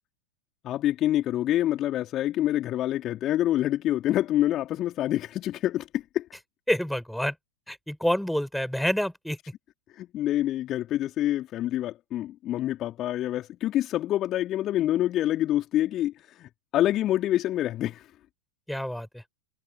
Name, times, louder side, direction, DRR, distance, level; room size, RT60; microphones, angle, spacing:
voice 1, 0.6-6.3 9.9-18.1, left 13 dB, 30° left, 4.0 m, -26 dB
voice 2, 6.7-7.3 7.7-9.4 18.7-19.2, equal, ahead, 6.4 m, -28 dB
figure-of-eight pair, 90°, 0 cm